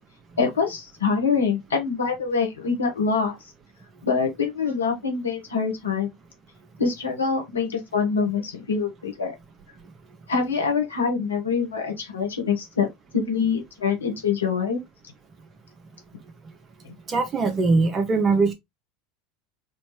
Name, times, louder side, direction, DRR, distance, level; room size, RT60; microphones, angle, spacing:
voice 1, 0.4-3.4 4.0-6.1 6.8-9.3 10.3-12.9 13.1-14.8, left 5 dB, 90° left, 1.3 m, -25 dB
voice 2, 17.1-18.5, right 3 dB, 30° right, 1.2 m, -21 dB
4.2 x 2.8 x 3.1 m
hypercardioid pair, 85°, 0 cm